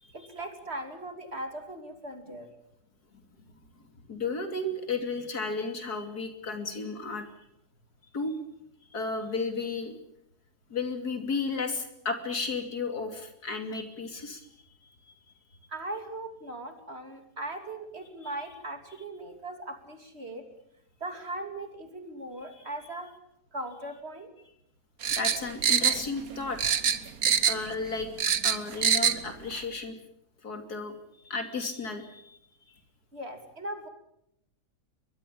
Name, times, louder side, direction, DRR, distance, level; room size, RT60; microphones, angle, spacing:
voice 1, 0.1-2.5 15.7-20.4 21.0-23.1 23.5-24.3 33.1-33.9, right 1 dB, 40° right, 7 dB, 3.2 m, -39 dB
voice 2, 3.9-7.3 8.1-8.4 8.9-9.9 10.7-14.5 18.2-18.3 22.5-22.6 25.1-26.7 27.4-30.0 30.4-31.0 31.2-32.4 32.7-32.8, left 3 dB, 75° left, 7 dB, 3.4 m, -33 dB
sound 1, 25.0-26.3 26.6-27.7 28.0-29.2 29.5-29.6, right 8 dB, 65° right, 1.6 m, -24 dB
23.5 x 21.5 x 8.6 m, 0.78 s
omnidirectional pair, 1.7 m